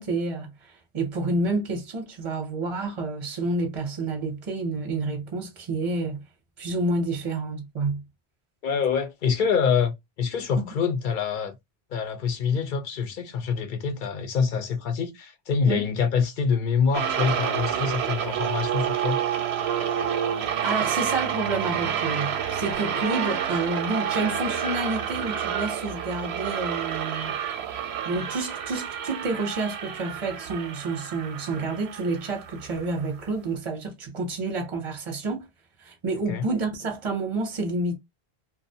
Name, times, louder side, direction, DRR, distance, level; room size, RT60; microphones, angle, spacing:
voice 1, 0.0-6.2 6.6-8.0 10.6-10.7 15.7-15.9 20.4-27.3 28.0-35.5 35.8-38.0, right 3 dB, 40° right, 0.5 m, -29 dB
voice 2, 8.6-11.6 11.9-19.2 36.3-36.5, left 6 dB, 60° left, 0.6 m, -25 dB
sound 1, 16.9-33.2, right 9 dB, 85° right, 0.8 m, -29 dB
2.5 x 2.0 x 2.6 m
omnidirectional pair, 1.1 m